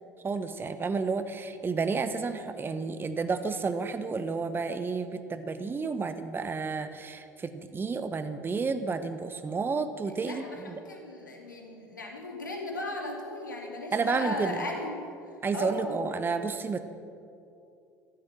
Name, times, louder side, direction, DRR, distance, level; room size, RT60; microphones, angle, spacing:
voice 1, 0.2-10.8 13.9-14.6 15.4-16.8, right 4 dB, 20° right, 10 dB, 0.9 m, -31 dB
voice 2, 10.2-15.1 15.5-16.0, left 2 dB, 85° left, 1 dB, 2.4 m, -36 dB
14.5 x 12.5 x 7.2 m, 2.6 s
figure-of-eight pair, 65°, 10 cm